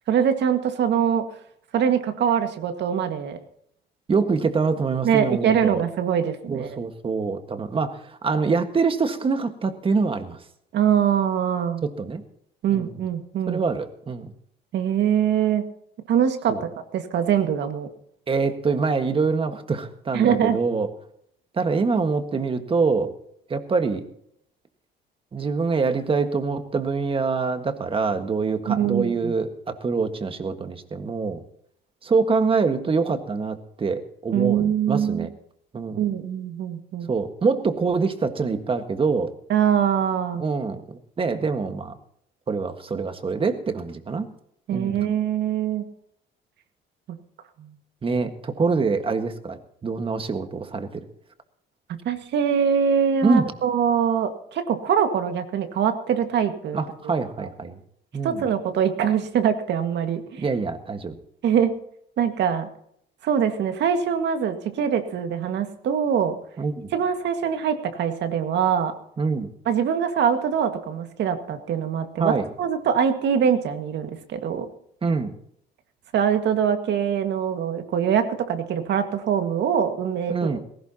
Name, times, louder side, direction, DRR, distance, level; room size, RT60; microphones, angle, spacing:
voice 1, 0.1-1.2 1.7-3.4 5.0-6.7 10.7-11.8 12.6-13.6 14.7-15.6 16.1-16.6 16.9-17.9 20.1-20.6 28.7-29.3 34.3-35.3 36.0-37.1 39.5-40.4 44.7-45.8 47.6-47.7 52.1-56.8 57.4-57.5 58.2-60.4 61.4-61.7 62.2-62.7 63.2-66.4 66.9-68.9 69.7-74.7 76.1-80.3, right 8 dB, 60° right, 7 dB, 1.9 m, -23 dB
voice 2, 4.1-5.8 6.5-10.4 11.8-12.2 12.7-12.9 13.5-14.3 16.5-16.6 18.3-20.9 21.5-23.1 23.5-24.0 25.3-31.4 32.0-35.3 35.7-36.0 37.1-39.3 40.4-41.9 42.5-44.3 44.7-45.1 48.0-51.0 53.2-53.5 56.7-57.8 58.1-58.5 60.4-61.2 66.6-66.9 69.2-69.5 72.2-72.5 75.0-75.3 80.3-80.6, right 4 dB, 25° right, 7 dB, 1.6 m, -25 dB
19.0 x 17.0 x 2.9 m, 0.69 s
cardioid pair, 125°, 20 cm